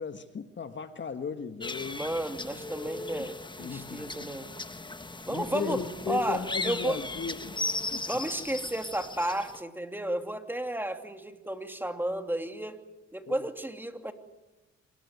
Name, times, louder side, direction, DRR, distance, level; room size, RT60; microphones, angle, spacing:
voice 1, 0.0-2.1 3.2-3.3 3.6-4.3 5.3-7.5 7.9-8.0 13.3-13.4, left 6 dB, 40° left, 8 dB, 1.6 m, -36 dB
sound 1, 1.6-9.6, left 2 dB, 15° left, 1.4 m, -37 dB
voice 2, 2.0-4.5 5.3-7.0 8.1-12.8 13.1-14.1, right 1 dB, 5° right, 6 dB, 2.9 m, -33 dB
26.0 x 21.0 x 9.7 m, 1.0 s
cardioid pair, 90°, 30 cm